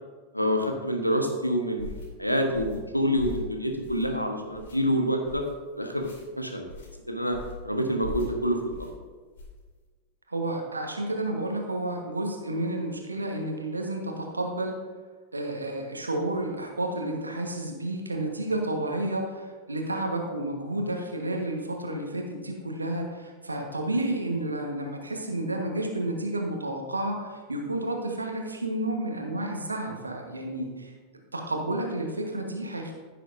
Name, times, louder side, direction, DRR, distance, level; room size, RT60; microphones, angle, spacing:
voice 1, 0.3-5.4 5.8-6.1 6.4-6.6 7.1-7.4 7.6-8.9, equal, 90° left, 3 dB, 1.1 m, -27 dB
sound 1, 1.8-2.1 2.5-2.8 3.2-3.5 3.8-4.2 4.5-4.8 5.2-5.5 6.0-6.2 6.7-6.9 7.3-7.6 8.0-8.3 8.7-8.9 9.3-9.6, left 1 dB, 60° left, 2.5 m, -39 dB
voice 2, 10.3-14.8 15.3-30.9 31.3-32.9, right 1 dB, 80° right, 2 dB, 1.3 m, -31 dB
15.0 x 6.6 x 2.6 m, 1.5 s
figure-of-eight pair, 90°, 0 cm